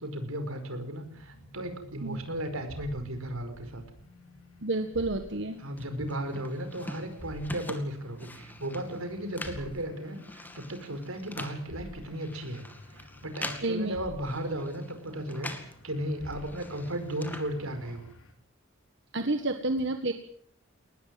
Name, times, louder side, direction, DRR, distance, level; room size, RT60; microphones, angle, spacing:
voice 1, 0.0-3.8 5.6-12.6 12.9-18.1, right 1 dB, 90° right, 8 dB, 5.0 m, -35 dB
sound 1, 1.0-18.3, equal, 80° left, 4.2 m, -50 dB
voice 2, 4.6-5.6 13.6-14.0 19.1-20.1, right 2 dB, 60° right, 7 dB, 1.7 m, -29 dB
sound 2, 5.8-15.8 16.1-18.1, left 1 dB, 10° left, 2.2 m, -44 dB
22.0 x 19.5 x 7.8 m, 0.63 s
head